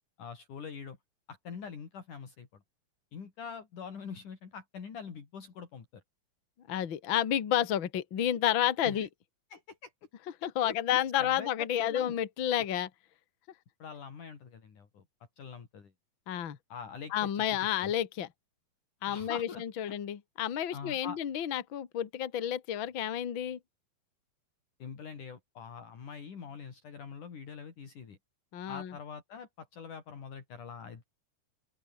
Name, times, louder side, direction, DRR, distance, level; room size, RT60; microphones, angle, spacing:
voice 1, 0.2-1.0 1.3-2.6 3.1-5.9 8.8-9.1 9.5-9.9 10.4-12.2 13.8-15.0 15.4-15.9 16.7-17.9 19.1-19.6 20.7-21.2 24.8-28.2 28.7-31.0, left 6 dB, 60° left, 4.9 m, -44 dB
voice 2, 6.7-9.1 10.4-12.9 16.3-16.6 17.1-18.3 19.0-23.6 28.5-28.9, left 10 dB, 40° left, 2.0 m, -30 dB
open air
omnidirectional pair, 4.2 m